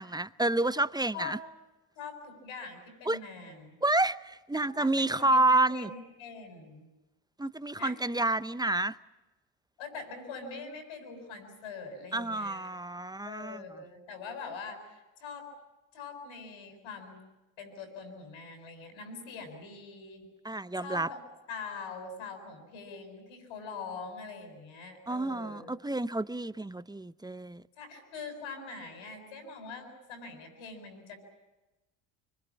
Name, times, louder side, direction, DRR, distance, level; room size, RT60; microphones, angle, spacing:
voice 1, 0.0-1.4 3.1-3.2 3.8-5.9 7.4-9.0 12.1-13.6 20.4-21.1 25.1-27.6, right 2 dB, 10° right, 0.8 m, -29 dB
voice 2, 2.0-3.8 4.5-5.4 5.7-6.9 7.8-8.0 9.8-12.7 13.2-15.5 15.9-17.2 17.6-20.3 20.8-21.2 21.5-25.7 27.8-31.2, left 4 dB, 75° left, 7.6 m, -43 dB
25.0 x 22.5 x 8.6 m
hypercardioid pair, 65°, 49 cm